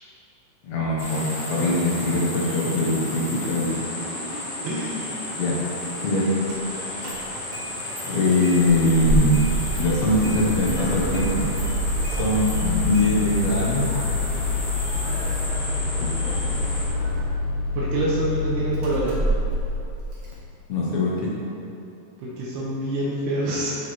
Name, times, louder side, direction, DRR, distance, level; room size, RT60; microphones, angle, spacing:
voice 1, 0.6-3.8 5.4-5.6 6.0-6.3 8.1-9.4 9.8-11.5 12.1-13.9 16.0-16.1 20.7-21.3, left 1 dB, 75° left, -5 dB, 1.5 m, -22 dB
sound 1, 1.0-16.9, left 1 dB, 40° left, 1.9 m, -33 dB
voice 2, 4.6-5.2 16.2-16.5 17.7-19.2 22.2-23.8, right 1 dB, 85° right, -6 dB, 3.0 m, -27 dB
Engine starting, 6.5-6.6 7.0-7.6 8.0-8.1 8.4-20.3, left 1 dB, 70° right, 1.2 m, -27 dB
sound 2, 10.4-17.2, right 1 dB, 50° right, 2.2 m, -33 dB
11.5 x 4.8 x 4.3 m, 2.8 s
omnidirectional pair, 4.7 m